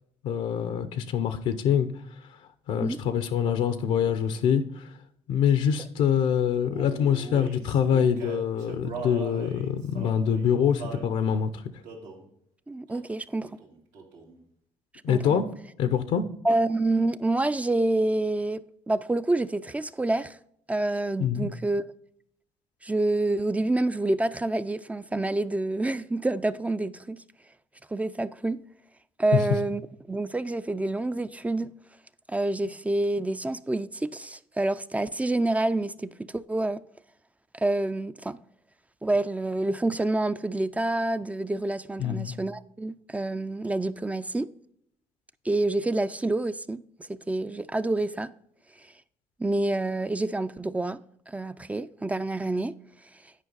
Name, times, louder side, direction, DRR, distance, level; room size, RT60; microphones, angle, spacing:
voice 1, 0.2-1.9 2.2-2.4 2.7-5.0 5.3-11.7 15.0-15.5 15.8-16.3 21.2-21.5 29.3-29.4 42.0-42.3, left 8 dB, 75° left, 0.7 m, -25 dB
Male singing, 6.7-11.1 11.8-12.3 12.9-13.2 13.4-14.4, right 5 dB, 90° right, 2.2 m, -40 dB
voice 2, 12.7-13.5 15.1-15.2 16.4-20.4 20.7-21.9 22.8-27.2 27.9-28.6 29.2-29.8 30.1-31.7 32.3-36.8 37.5-38.4 39.0-44.5 45.4-48.3 48.8-48.9 49.4-51.0 51.3-52.7, right 2 dB, 10° right, 0.4 m, -27 dB
9.8 x 5.1 x 4.0 m
supercardioid pair, 85°, 12 cm